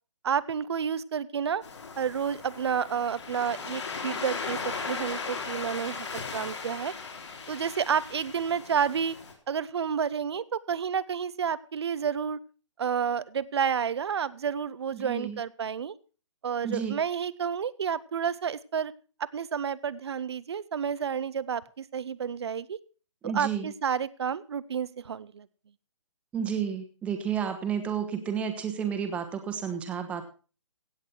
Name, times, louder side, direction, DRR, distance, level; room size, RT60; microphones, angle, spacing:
voice 1, 0.2-1.6 2.0-6.9 7.5-9.2 9.5-12.4 12.8-15.9 16.4-18.9 19.3-22.8 23.2-25.5, right 7 dB, 55° right, 18 dB, 0.7 m, -30 dB
Waves surf, 1.6-9.3, left 5 dB, 65° left, 3.7 m, -37 dB
voice 2, 14.9-15.4 16.6-17.0 23.2-23.7 26.3-30.3, right 7 dB, 10° right, 6 dB, 1.1 m, -31 dB
16.0 x 8.3 x 4.4 m, 0.36 s
hypercardioid pair, 160°, 16 cm